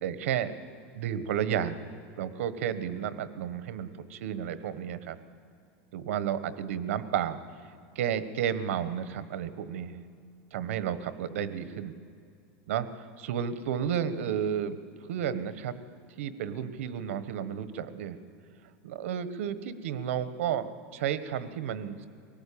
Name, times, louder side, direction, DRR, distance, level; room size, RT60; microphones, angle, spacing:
voice 1, 0.0-0.5 0.9-1.8 2.2-5.2 5.9-7.4 7.9-10.0 10.5-11.9 12.7-12.9 13.2-14.8 15.1-15.8 16.2-18.2 18.8-22.1, right 9 dB, 80° right, 12 dB, 1.3 m, -32 dB
23.5 x 19.0 x 8.6 m, 2.4 s
supercardioid pair, 170°, 7 cm